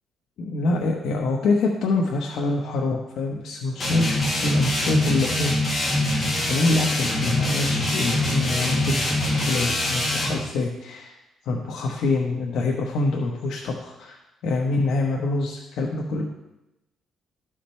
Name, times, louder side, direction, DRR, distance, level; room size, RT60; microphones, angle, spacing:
voice 1, 0.4-5.6 6.5-11.1 11.4-16.2, left 3 dB, 75° left, 0 dB, 1.0 m, -25 dB
sound 1, 3.8-10.4, left 1 dB, 25° left, 2.3 m, -24 dB
13.0 x 5.0 x 4.4 m, 0.93 s
cardioid pair, 150°, 0 cm